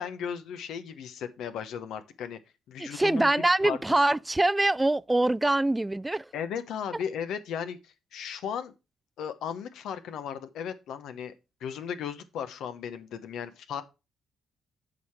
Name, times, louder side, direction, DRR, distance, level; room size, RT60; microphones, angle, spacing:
voice 1, 0.0-2.4 2.7-3.3 3.6-3.8 6.3-8.7 9.2-11.3 11.6-13.8, left 8 dB, 75° left, 1.0 m, -36 dB
voice 2, 2.8-6.3, right 2 dB, 15° right, 0.4 m, -24 dB
8.1 x 5.0 x 5.8 m
supercardioid pair, 55°, 0 cm